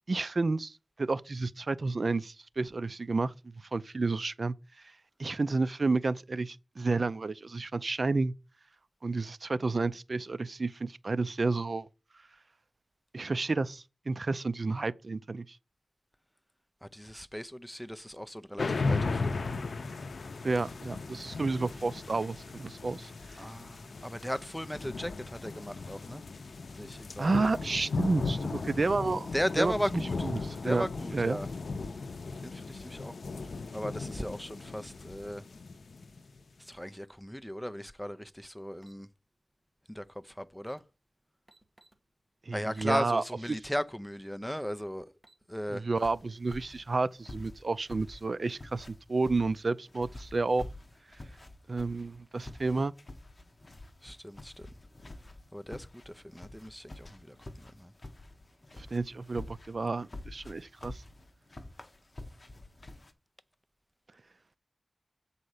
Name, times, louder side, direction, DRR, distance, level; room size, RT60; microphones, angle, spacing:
voice 1, 0.1-4.5 5.2-8.3 9.0-11.9 13.1-15.6 20.4-23.4 27.2-29.7 30.2-31.4 42.5-43.2 45.7-50.7 51.7-52.9 58.8-61.0, right 3 dB, 55° right, 0.4 m, -31 dB
voice 2, 16.8-19.5 23.4-26.2 26.8-27.4 29.3-30.1 30.6-31.5 32.4-33.4 33.7-35.4 36.7-39.1 39.9-40.8 42.5-45.1 45.5-45.8 54.0-54.7 55.5-57.9, equal, 5° left, 0.5 m, -37 dB
sound 1, 18.6-36.4, left 3 dB, 90° left, 0.5 m, -36 dB
sound 2, 38.8-39.0 40.2-40.3 40.6-40.8 41.5-42.0 42.7-42.9 43.4-43.7 44.1-44.2 45.0-45.4, right 1 dB, 20° right, 1.2 m, -61 dB
sound 3, 46.0-63.1, left 2 dB, 40° left, 1.1 m, -48 dB
7.7 x 4.2 x 6.4 m
wide cardioid pair, 90°, 0 cm